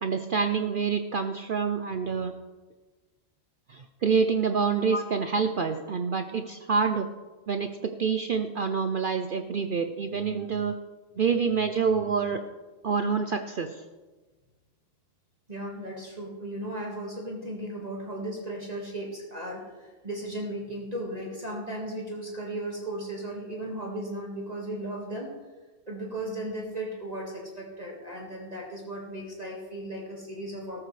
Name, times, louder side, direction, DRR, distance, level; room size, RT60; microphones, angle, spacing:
voice 1, 0.0-2.3 3.7-7.1 7.5-10.7 11.2-12.4 12.8-13.8, right 5 dB, 65° right, 7 dB, 0.5 m, -27 dB
voice 2, 15.5-25.3 25.9-30.8, right 1 dB, 30° right, -2 dB, 1.8 m, -36 dB
13.5 x 13.5 x 3.2 m, 1.3 s
omnidirectional pair, 1.5 m